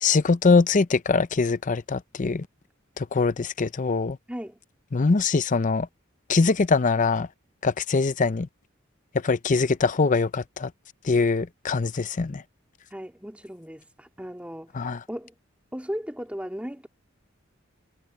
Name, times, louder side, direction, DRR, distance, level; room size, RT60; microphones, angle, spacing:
voice 1, 0.0-2.5 3.0-4.2 4.9-5.9 6.3-7.3 7.6-8.5 9.2-10.7 11.0-12.4 14.8-15.0, left 4 dB, 40° left, 0.6 m, -23 dB
voice 2, 4.3-4.6 12.9-15.3 15.7-16.9, equal, 5° right, 3.0 m, -36 dB
head